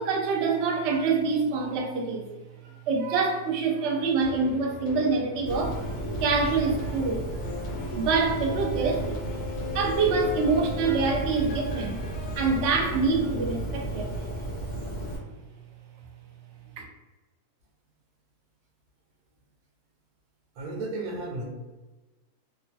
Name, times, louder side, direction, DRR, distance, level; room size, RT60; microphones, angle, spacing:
voice 1, 0.0-2.2 2.9-7.3 7.9-9.0 9.7-12.0 12.3-14.1, right 4 dB, 60° right, 0 dB, 0.8 m, -26 dB
sound 1, 4.2-13.6 14.1-14.2, left 4 dB, 90° left, 1.1 m, -40 dB
Bird, 5.5-15.2, right 1 dB, 40° left, 1.4 m, -33 dB
voice 2, 20.5-21.4, right 2 dB, 85° right, -1 dB, 1.2 m, -33 dB
3.0 x 2.1 x 2.6 m, 1.2 s
omnidirectional pair, 1.6 m